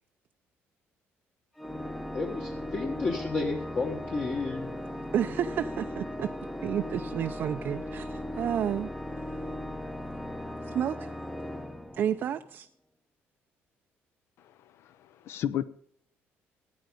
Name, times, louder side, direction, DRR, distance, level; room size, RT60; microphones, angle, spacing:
Organ, 1.6-12.5, left 1 dB, 5° left, 0.8 m, -37 dB
voice 1, 2.1-4.7, left 3 dB, 30° left, 1.3 m, -32 dB
voice 2, 5.1-6.3 6.6-8.9 10.7-11.0 12.0-12.7, right 9 dB, 45° right, 0.5 m, -30 dB
voice 3, 14.4-15.6, left 10 dB, 65° left, 0.7 m, -34 dB
16.5 x 9.4 x 5.2 m
cardioid pair, 155°, 5 cm